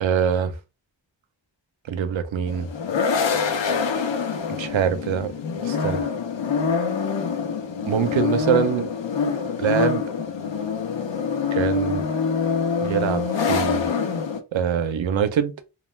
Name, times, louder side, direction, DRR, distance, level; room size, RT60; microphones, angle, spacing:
voice 1, 0.0-0.5 1.9-2.7 4.6-5.3 5.6-6.0 7.9-8.9 9.6-10.1 11.5-12.0 12.8-13.9 14.5-15.5, right 8 dB, 80° right, 0.6 m, -23 dB
sound 1, 2.5-14.4, left 5 dB, 75° left, 0.6 m, -25 dB
2.3 x 2.2 x 3.1 m
cardioid pair, 45°, 45 cm